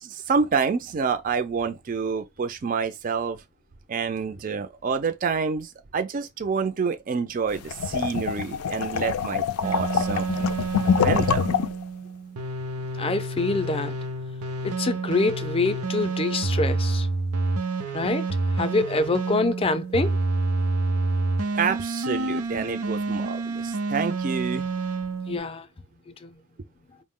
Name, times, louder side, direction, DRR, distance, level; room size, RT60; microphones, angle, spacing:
voice 1, 0.0-3.4 3.9-10.5 10.8-11.5 21.5-24.6, right 5 dB, 40° right, 0.4 m, -28 dB
sound 1, 7.5-11.8, left 7 dB, 85° left, 0.4 m, -25 dB
sound 2, 9.6-25.4, right 3 dB, 90° right, 0.6 m, -28 dB
voice 2, 13.0-14.0 14.6-17.1 17.9-18.2 18.6-20.2 25.3-25.6 26.2-26.4, left 3 dB, 25° left, 0.4 m, -25 dB
4.5 x 2.0 x 3.6 m
head